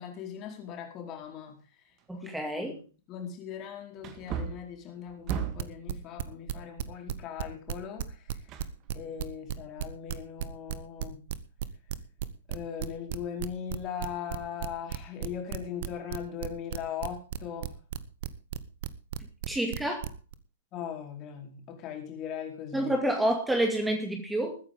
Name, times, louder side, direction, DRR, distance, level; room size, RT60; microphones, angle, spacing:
voice 1, 0.0-1.6 2.1-2.3 2.6-2.8 3.1-8.4 8.9-11.2 12.5-17.7 20.7-22.9, left 8 dB, 30° left, 2 dB, 4.5 m, -39 dB
Wood, 2.0-2.1 2.7-2.8 4.0-5.8 8.5-9.3 9.6-9.7, right 8 dB, 30° right, 2.1 m, -36 dB
voice 2, 2.1-2.8 19.5-20.1 22.7-24.6, right 1 dB, 5° right, 3 dB, 2.2 m, -28 dB
sound 1, 5.1-7.4 7.7-20.3, right 11 dB, 50° right, 1.1 m, -34 dB
21.0 x 9.7 x 3.7 m, 0.36 s
figure-of-eight pair, 110°, 0 cm